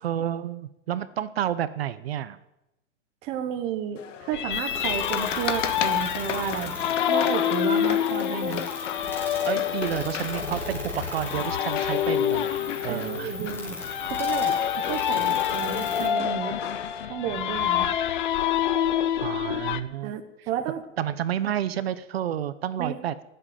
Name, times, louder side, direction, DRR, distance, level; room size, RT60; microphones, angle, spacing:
voice 1, 0.0-2.4 9.4-13.5 19.2-20.2 21.0-23.1, right 10 dB, 55° right, 14 dB, 0.9 m, -30 dB
voice 2, 3.2-6.8 7.1-8.6 12.9-13.8 14.1-16.6 17.0-17.9 20.0-20.8 22.8-23.0, right 9 dB, 15° right, 6 dB, 0.9 m, -32 dB
sound 1, 4.0-17.1, left 8 dB, 75° left, 1.7 m, -37 dB
sound 2, 4.3-19.8, left 10 dB, 40° left, 0.8 m, -27 dB
sound 3, 4.5-16.1, left 2 dB, 5° left, 2.7 m, -37 dB
18.5 x 7.9 x 9.2 m, 0.92 s
supercardioid pair, 175°, 37 cm